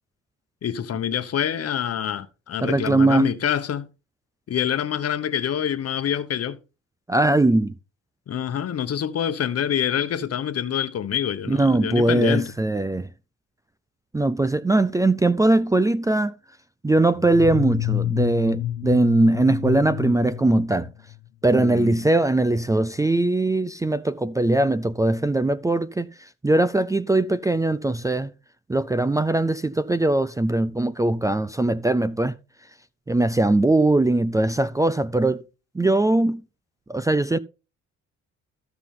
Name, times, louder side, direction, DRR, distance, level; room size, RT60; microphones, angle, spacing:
voice 1, 0.6-3.9 4.5-6.6 8.3-12.5 21.5-22.0, left 9 dB, 55° left, 1.0 m, -26 dB
voice 2, 2.6-3.3 7.1-7.7 11.5-13.1 14.1-16.3 16.8-20.9 21.4-28.3 28.7-32.3 33.1-35.4 35.7-36.4 36.9-37.4, right 2 dB, 10° right, 0.4 m, -21 dB
sound 1, 17.2-21.3, left 13 dB, 75° left, 0.6 m, -28 dB
14.5 x 5.9 x 3.7 m
cardioid pair, 90°, 30 cm